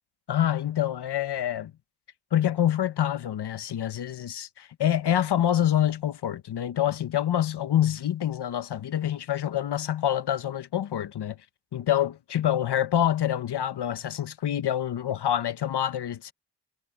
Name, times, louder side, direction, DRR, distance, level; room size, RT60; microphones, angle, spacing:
voice 1, 0.3-1.7 2.3-11.4 11.7-16.3, left 11 dB, 80° left, 1.2 m, -26 dB
cardioid pair, 45°, 40 cm